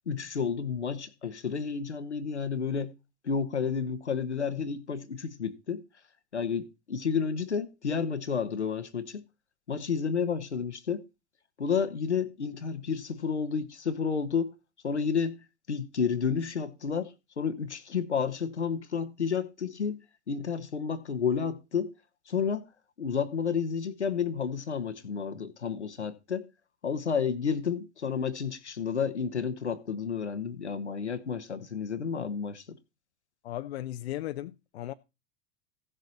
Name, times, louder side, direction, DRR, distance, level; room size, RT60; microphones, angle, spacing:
voice 1, 0.1-2.9 3.2-5.8 6.3-9.2 9.7-11.0 11.6-14.5 14.8-15.4 15.7-21.9 22.3-22.7 23.0-26.4 26.8-32.8, left 6 dB, 90° left, 1.0 m, -31 dB
voice 2, 33.4-34.9, left 14 dB, 70° left, 0.6 m, -36 dB
15.5 x 6.7 x 4.1 m
figure-of-eight pair, 85°, 33 cm